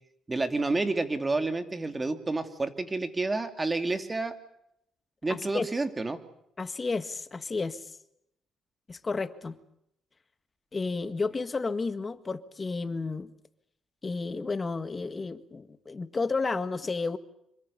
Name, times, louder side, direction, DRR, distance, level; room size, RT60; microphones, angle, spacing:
voice 1, 0.3-4.3 5.2-6.2, right 3 dB, 20° right, 8 dB, 2.7 m, -29 dB
voice 2, 5.3-5.7 6.6-7.9 8.9-9.6 10.7-13.3 14.0-17.2, left 4 dB, 30° left, 11 dB, 1.8 m, -32 dB
26.5 x 24.0 x 6.9 m, 0.77 s
cardioid pair, 90°, 0 cm